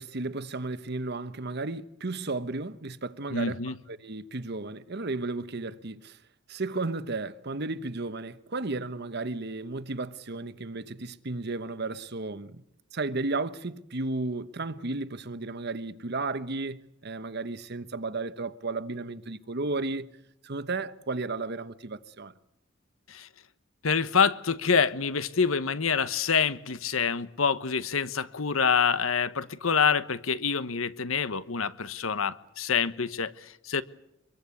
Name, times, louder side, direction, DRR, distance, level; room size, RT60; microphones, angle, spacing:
voice 1, 0.0-6.2 6.5-12.6 12.9-20.1 20.4-22.3, right 3 dB, 55° right, 1.1 m, -34 dB
voice 2, 3.3-3.8 23.1-23.3 23.8-33.8, left 6 dB, 80° left, 1.1 m, -26 dB
24.5 x 22.5 x 8.4 m
head